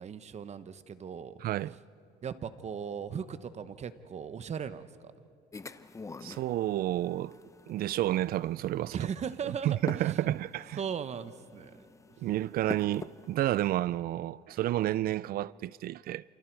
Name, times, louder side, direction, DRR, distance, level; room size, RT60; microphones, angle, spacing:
voice 1, 0.0-1.4 1.7-1.8 2.2-5.1 8.9-10.2 10.8-11.9, right 7 dB, 40° right, 1.1 m, -38 dB
voice 2, 1.4-1.7 6.2-7.4 7.7-9.1 9.6-10.8 12.2-16.2, right 14 dB, 60° right, 0.4 m, -30 dB
sound 1, 5.5-13.8, left 3 dB, 20° left, 0.8 m, -47 dB
28.5 x 28.0 x 4.7 m
cardioid pair, 110°, 17 cm